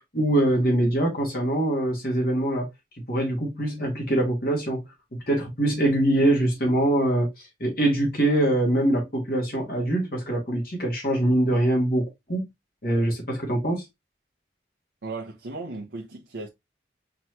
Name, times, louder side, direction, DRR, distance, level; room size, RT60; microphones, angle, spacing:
voice 1, 0.0-2.7 3.1-4.8 5.1-12.4 12.8-13.8, right 1 dB, 50° left, 1.8 m, -23 dB
voice 2, 15.0-16.5, right 3 dB, 75° right, 0.7 m, -36 dB
4.5 x 3.0 x 3.0 m
head